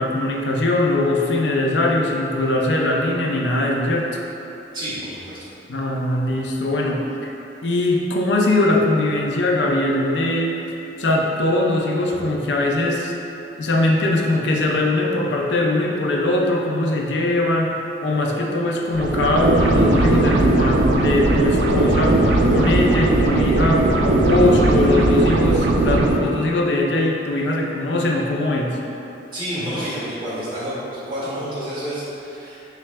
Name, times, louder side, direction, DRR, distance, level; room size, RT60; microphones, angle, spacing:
voice 1, 0.0-4.1 5.7-7.3 7.6-10.6 11.0-13.1 13.6-22.2 22.5-28.8, left 2 dB, 85° left, -1 dB, 0.5 m, -21 dB
voice 2, 4.7-5.4 29.3-32.7, equal, 25° right, -11 dB, 1.3 m, -29 dB
sound 1, 18.9-26.2, right 2 dB, 90° right, 0.4 m, -18 dB
5.9 x 3.3 x 2.2 m, 2.9 s
head